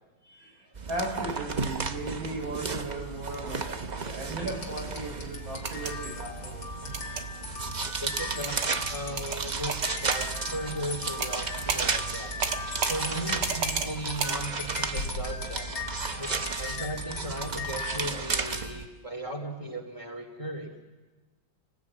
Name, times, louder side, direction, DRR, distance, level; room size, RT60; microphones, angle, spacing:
voice 1, 0.2-6.9 16.2-16.3, right 2 dB, 75° right, 0 dB, 6.7 m, -37 dB
sound 1, 0.7-18.9, right 4 dB, 40° right, 0.6 m, -34 dB
sound 2, 4.4-18.9, left 4 dB, 75° left, 3.3 m, -39 dB
sound 3, 5.5-5.9 6.9-7.2 8.4-8.7 9.2-9.4 9.7-10.3 11.2-11.4 11.7-11.9 12.4-13.0 13.4-13.9 14.2-14.4, right 5 dB, 60° right, 2.1 m, -30 dB
voice 2, 8.0-8.6 8.9-12.4 12.9-15.7 16.2-16.3 16.6-20.7, right 1 dB, 15° left, 5 dB, 2.6 m, -36 dB
29.0 x 19.5 x 8.4 m, 1.3 s
omnidirectional pair, 2.2 m